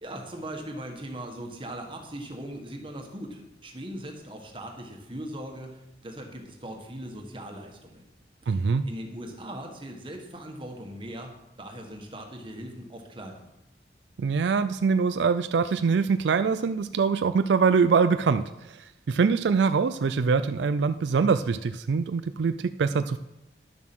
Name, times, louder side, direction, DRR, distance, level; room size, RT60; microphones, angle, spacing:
voice 1, 0.0-8.1 8.4-13.5, right 1 dB, 30° right, 2 dB, 1.6 m, -40 dB
voice 2, 8.5-8.8 14.2-23.2, right 5 dB, 75° right, 11 dB, 0.4 m, -24 dB
11.5 x 7.3 x 6.1 m, 0.93 s
head